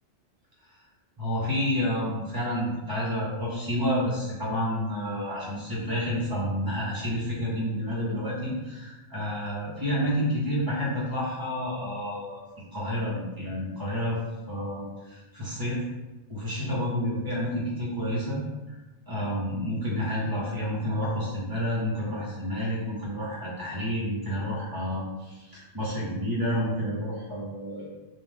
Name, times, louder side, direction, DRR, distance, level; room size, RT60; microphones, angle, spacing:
voice 1, 1.2-12.4 12.7-14.2 14.5-15.8 16.3-18.4 18.7-18.8 19.1-27.9, equal, 20° right, -7 dB, 1.2 m, -29 dB
3.4 x 2.7 x 3.6 m, 1.1 s
omnidirectional pair, 1.3 m